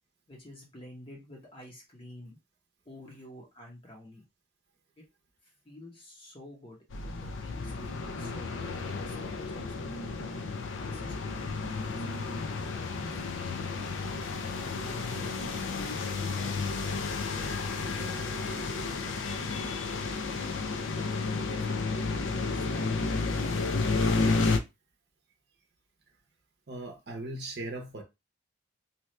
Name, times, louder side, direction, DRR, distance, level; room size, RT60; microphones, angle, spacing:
voice 1, 0.3-2.4 2.9-4.2 5.4-10.0 10.8-12.0 12.3-13.9 14.5-17.1, left 1 dB, 25° left, 0.8 m, -50 dB
sound 1, 6.9-24.6, left 3 dB, 80° left, 0.5 m, -32 dB
voice 2, 26.7-28.0, right 2 dB, 55° right, 0.7 m, -38 dB
2.8 x 2.3 x 3.1 m
head